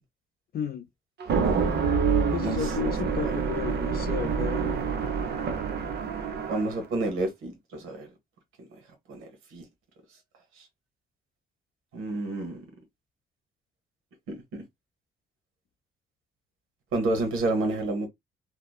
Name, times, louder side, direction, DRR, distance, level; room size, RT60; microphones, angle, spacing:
voice 1, 0.5-0.8 2.3-4.8, left 7 dB, 50° left, 0.6 m, -33 dB
sound 1, 1.2-6.8, right 5 dB, 55° right, 0.6 m, -27 dB
voice 2, 1.4-1.8 2.4-2.7 3.2-3.3 6.5-8.1 9.1-9.6 11.9-12.6 14.3-14.6 16.9-18.1, right 2 dB, 85° right, 1.1 m, -30 dB
2.8 x 2.1 x 2.3 m
cardioid pair, 90°, 20 cm